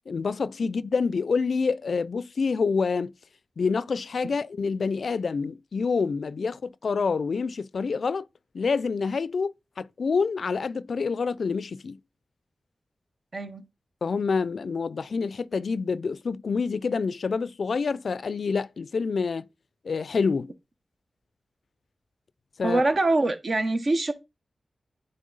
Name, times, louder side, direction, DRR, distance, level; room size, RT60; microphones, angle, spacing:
voice 1, 0.1-3.1 3.6-8.3 8.5-12.0 14.0-19.5 19.8-20.5 22.6-22.8, left 5 dB, 75° left, 0.3 m, -27 dB
voice 2, 13.3-13.7 22.6-24.1, right 2 dB, 55° right, 0.9 m, -24 dB
9.3 x 3.4 x 3.9 m
cardioid pair, 55°, 0 cm